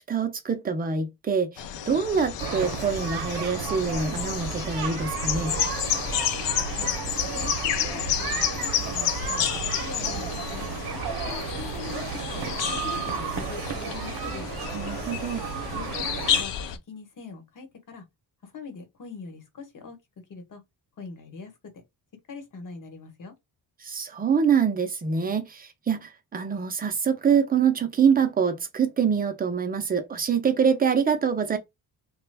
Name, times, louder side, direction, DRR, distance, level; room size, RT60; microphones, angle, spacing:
voice 1, 0.1-5.6 14.7-15.4 23.8-31.6, right 6 dB, 20° right, 0.4 m, -25 dB
sound 1, 1.6-16.8, left 9 dB, 85° left, 0.6 m, -30 dB
sound 2, 2.4-16.4, right 7 dB, 65° right, 0.7 m, -33 dB
voice 2, 8.2-10.7 11.1-12.1 12.3-14.5 15.7-16.0 16.4-16.5 16.9-18.0 18.4-20.0 20.3-20.6 21.0-21.5 22.3-23.3, left 5 dB, 50° left, 1.1 m, -42 dB
3.0 x 2.2 x 3.3 m
wide cardioid pair, 160°, 42 cm